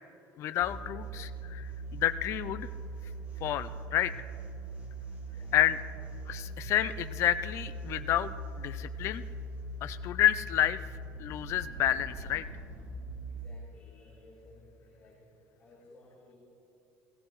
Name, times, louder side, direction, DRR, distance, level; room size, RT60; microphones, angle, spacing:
voice 1, 0.4-2.7 3.4-4.1 5.5-5.8 6.3-9.2 9.8-10.8 11.2-12.4, left 12 dB, 45° left, 12 dB, 0.4 m, -29 dB
sound 1, 0.6-13.5, right 2 dB, 25° right, 2.4 m, -41 dB
voice 2, 13.2-15.3 15.6-16.3, left 2 dB, 20° left, -9 dB, 3.5 m, -57 dB
17.0 x 16.0 x 3.1 m, 2.8 s
cardioid pair, 150°, 7 cm